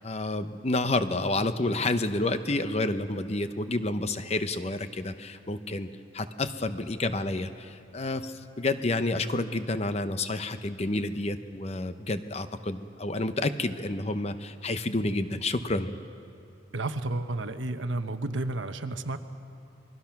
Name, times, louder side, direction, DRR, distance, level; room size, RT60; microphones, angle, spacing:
voice 1, 0.0-5.9 6.1-16.0, left 2 dB, 35° left, 10 dB, 0.8 m, -29 dB
voice 2, 16.7-19.2, right 2 dB, 85° right, 8 dB, 1.1 m, -31 dB
27.0 x 21.0 x 5.9 m, 2.6 s
head